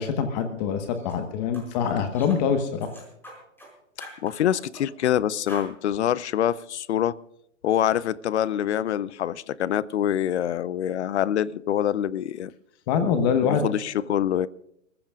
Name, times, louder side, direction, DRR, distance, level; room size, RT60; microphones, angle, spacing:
voice 1, 0.0-2.9 12.9-13.6, left 7 dB, 35° left, 1.4 m, -24 dB
sound 1, 0.9-1.2 1.5-1.7 2.1-2.4 2.8-3.7 4.0-5.1 5.5-5.7, equal, 5° left, 5.2 m, -44 dB
voice 2, 4.2-7.2 7.6-12.5 13.4-14.5, left 10 dB, 65° left, 0.7 m, -25 dB
29.0 x 15.0 x 2.4 m
hypercardioid pair, 140°, 37 cm